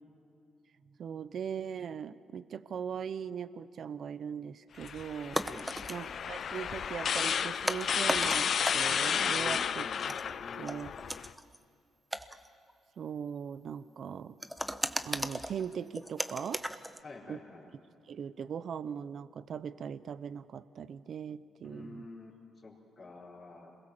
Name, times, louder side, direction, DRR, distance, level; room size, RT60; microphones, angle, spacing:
voice 1, 1.0-5.4 5.9-9.8 10.3-10.4 10.6-10.9 13.0-14.4 15.0-16.6 17.3-17.4 18.1-22.1, right 7 dB, 60° right, 15 dB, 0.7 m, -40 dB
sound 1, 4.8-11.3, left 7 dB, 55° left, 0.7 m, -32 dB
sound 2, 4.8-4.9 5.3-6.1 6.4-6.8 7.4-9.1 10.0-11.6 12.1-12.7 14.4-17.0, equal, 5° right, 1.0 m, -36 dB
voice 2, 5.5-5.9 9.3-10.0 10.4-10.6 17.0-17.7 21.6-22.3 22.6-23.8, left 3 dB, 35° left, -8 dB, 4.3 m, -48 dB
27.5 x 21.5 x 7.3 m, 2.5 s
cardioid pair, 90°, 0 cm